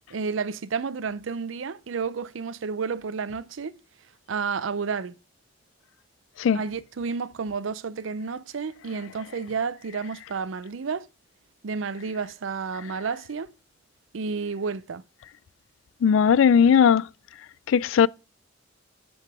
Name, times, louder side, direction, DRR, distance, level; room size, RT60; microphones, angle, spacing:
voice 1, 0.1-3.7 4.3-5.1 6.5-11.1 11.6-13.5 14.1-15.0, right 5 dB, 85° right, 0.5 m, -31 dB
voice 2, 16.0-17.1 17.7-18.1, left 7 dB, 80° left, 0.3 m, -18 dB
7.7 x 6.8 x 3.5 m
head